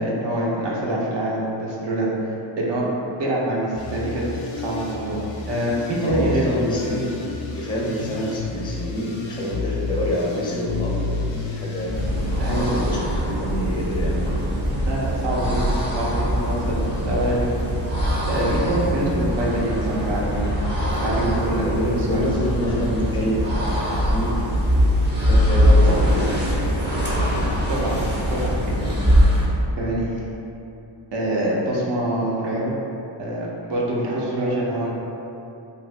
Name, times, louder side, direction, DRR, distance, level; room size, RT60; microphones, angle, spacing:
voice 1, 0.0-2.9 3.2-4.2 4.5-5.2 5.5-6.4 12.4-12.7 14.8-15.6 16.0-17.6 18.3-20.5 21.0-22.2 27.7-28.0 28.3-28.9 29.3-29.5 29.8-30.2 31.1-32.7 33.2-35.0, right 1 dB, 65° right, -4 dB, 0.8 m, -25 dB
sound 1, 3.7-13.0, left 4 dB, 90° left, 0.7 m, -31 dB
voice 2, 6.0-7.2 7.5-11.9 12.5-14.4 21.6-24.4 25.2-26.4, equal, 10° left, -4 dB, 0.4 m, -27 dB
sound 2, 11.8-29.6, equal, 25° right, 0.7 m, -22 dB
2.8 x 2.5 x 3.1 m, 2.8 s
cardioid pair, 110°, 47 cm